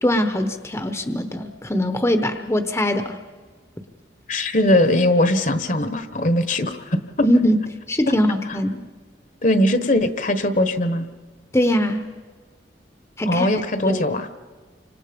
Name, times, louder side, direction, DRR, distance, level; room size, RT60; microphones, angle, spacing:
voice 1, 0.0-3.2 7.2-8.8 11.5-12.1 13.2-13.5 13.9-14.0, equal, 15° left, 7 dB, 1.0 m, -21 dB
voice 2, 4.3-7.0 9.4-11.1 13.3-14.3, left 1 dB, 45° left, 10 dB, 1.3 m, -20 dB
29.0 x 25.5 x 5.3 m, 1.4 s
head